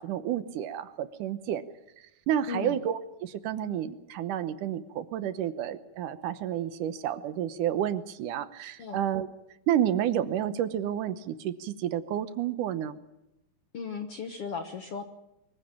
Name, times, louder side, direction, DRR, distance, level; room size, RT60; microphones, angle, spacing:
voice 1, 0.0-1.6 2.3-9.3 9.7-13.0, right 10 dB, 70° right, 12 dB, 2.2 m, -30 dB
voice 2, 2.5-2.8 8.8-9.0 13.7-15.0, left 5 dB, 60° left, 6 dB, 1.5 m, -36 dB
24.0 x 15.5 x 8.8 m, 0.89 s
omnidirectional pair, 4.4 m